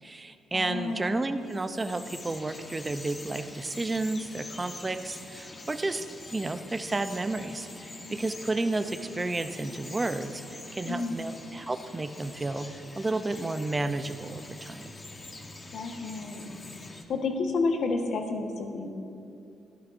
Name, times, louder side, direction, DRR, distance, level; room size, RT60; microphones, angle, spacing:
voice 1, 0.0-6.1 6.3-14.9, right 2 dB, 20° right, 9 dB, 0.5 m, -32 dB
voice 2, 0.5-1.2 10.8-11.2 15.7-16.5 17.1-18.9, left 3 dB, 70° left, 3 dB, 1.2 m, -30 dB
Bird vocalization bird call bird song, 0.9-17.0, left 2 dB, 30° left, 1.1 m, -44 dB
15.0 x 11.5 x 2.6 m, 2.6 s
cardioid pair, 90°, 0 cm